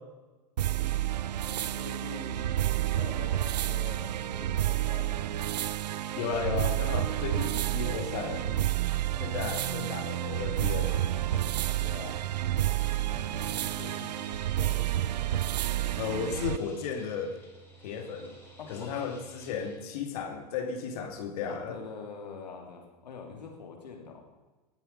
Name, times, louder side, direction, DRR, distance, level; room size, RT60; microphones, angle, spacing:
sound 1, 0.6-16.6, right 13 dB, 80° right, 0.5 m, -30 dB
voice 1, 1.4-2.6 2.9-5.3 11.8-12.2 13.1-14.8 18.6-18.9 21.5-24.2, left 5 dB, 85° left, 2 dB, 2.9 m, -45 dB
voice 2, 6.2-8.7 9.2-11.1 16.0-17.4 17.8-18.4 18.7-21.8, left 6 dB, 60° left, 5 dB, 2.3 m, -34 dB
sound 2, 10.0-19.8, right 1 dB, 10° left, 4.4 m, -53 dB
19.5 x 7.9 x 5.3 m, 1.2 s
hypercardioid pair, 105°, 21 cm